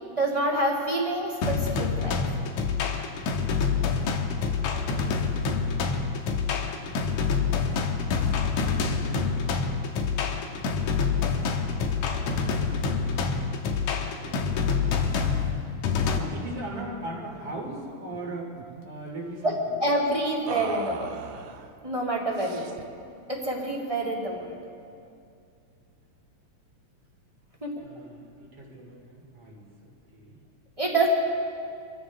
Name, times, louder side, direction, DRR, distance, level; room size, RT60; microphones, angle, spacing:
voice 1, 0.1-2.1 12.1-12.4 12.7-12.8 16.1-16.2 19.4-21.1 21.8-22.6 23.3-24.6 27.6-27.8 30.8-31.1, right 2 dB, 15° right, -3 dB, 1.9 m, -27 dB
sound 1, 1.4-16.2, left 5 dB, 85° left, 2.5 m, -27 dB
voice 2, 7.3-7.7 14.0-15.5 16.1-18.6 18.8-19.8 27.8-30.4, right 1 dB, 50° right, -2 dB, 3.7 m, -41 dB
sound 2, 17.1-17.3 17.6-17.8 18.1-18.9 20.5-21.7 22.3-23.0, right 7 dB, 80° right, 2.1 m, -39 dB
25.5 x 14.5 x 3.5 m, 2.4 s
omnidirectional pair, 3.3 m